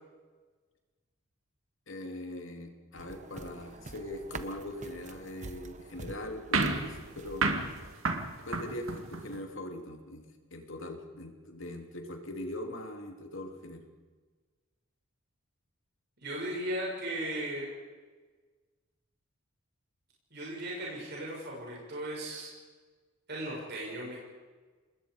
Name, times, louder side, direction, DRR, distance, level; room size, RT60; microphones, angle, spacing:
voice 1, 1.9-7.5 8.4-13.8, left 1 dB, 60° left, 3 dB, 2.9 m, -41 dB
sound 1, 3.0-8.0, right 3 dB, 35° right, 1.0 m, -46 dB
sound 2, 6.5-9.4, right 3 dB, 65° right, 2.1 m, -32 dB
voice 2, 16.2-17.7 20.3-22.5 23.3-24.2, right 1 dB, 50° right, -4 dB, 6.9 m, -36 dB
26.5 x 21.0 x 5.2 m, 1.4 s
head